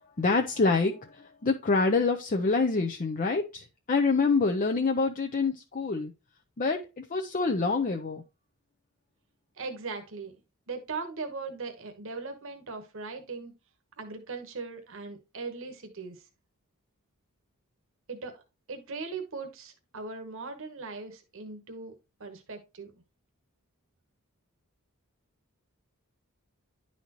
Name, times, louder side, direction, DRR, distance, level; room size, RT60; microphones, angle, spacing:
voice 1, 0.2-1.1 1.4-6.1 6.6-8.2, left 3 dB, 35° left, 0.5 m, -26 dB
voice 2, 9.6-10.3 10.7-13.5 14.0-16.2 18.1-18.4 18.7-21.9 22.2-22.9, right 4 dB, 60° right, 1.1 m, -39 dB
10.5 x 4.2 x 2.9 m
head